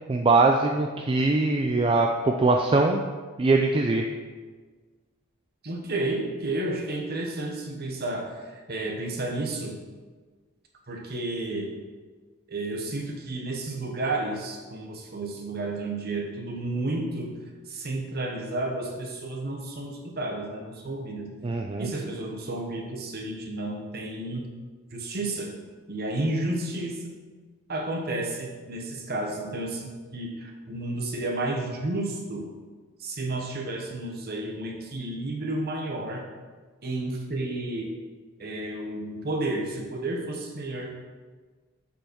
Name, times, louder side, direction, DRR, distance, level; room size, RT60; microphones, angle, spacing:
voice 1, 0.1-3.0 3.4-4.0 21.4-21.9, right 3 dB, 25° right, 2 dB, 0.4 m, -22 dB
voice 2, 5.6-9.7 10.9-11.7 12.5-17.3 17.7-21.3 21.8-24.4 24.9-25.5 25.9-27.1 27.7-32.5 33.0-36.2 36.8-37.9 38.4-40.9, right 2 dB, 45° right, 1 dB, 1.1 m, -31 dB
7.1 x 5.6 x 4.5 m, 1.4 s
head